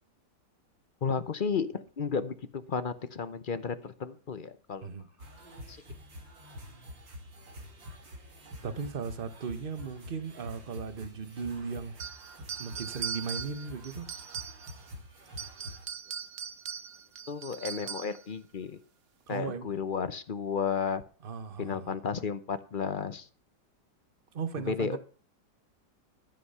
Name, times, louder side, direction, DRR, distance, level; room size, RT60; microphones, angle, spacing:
voice 1, 1.0-4.9 5.7-5.8 17.3-18.8 19.3-21.0 21.6-23.3 24.6-25.0, left 6 dB, 50° left, 0.6 m, -33 dB
sound 1, 5.2-15.9, left 1 dB, 85° right, 3.5 m, -47 dB
voice 2, 8.6-11.9 12.6-14.1 19.3-19.8 21.2-22.0 24.3-25.0, right 5 dB, 35° right, 1.1 m, -37 dB
sound 2, 12.0-14.9 15.3-18.2, right 8 dB, 65° right, 0.6 m, -40 dB
13.0 x 7.8 x 5.6 m
omnidirectional pair, 2.0 m